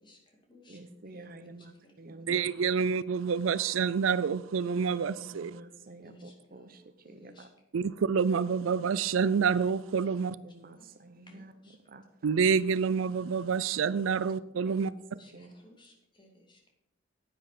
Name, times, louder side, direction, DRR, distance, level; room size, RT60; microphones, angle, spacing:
voice 1, 0.0-1.2 1.6-1.9 6.0-6.7 7.0-7.5 7.8-7.9 10.7-10.9 11.3-11.8 15.2-16.7, left 1 dB, 25° left, 1 dB, 2.3 m, -59 dB
voice 2, 0.7-2.7 5.2-7.5 10.3-11.5 11.9-12.0 14.2-14.3 14.6-15.0 15.3-15.5, right 2 dB, 45° right, 9 dB, 0.8 m, -49 dB
voice 3, 2.3-5.6 7.7-10.4 12.2-14.9, right 6 dB, 80° right, 18 dB, 0.4 m, -28 dB
10.0 x 9.7 x 5.0 m, 0.87 s
head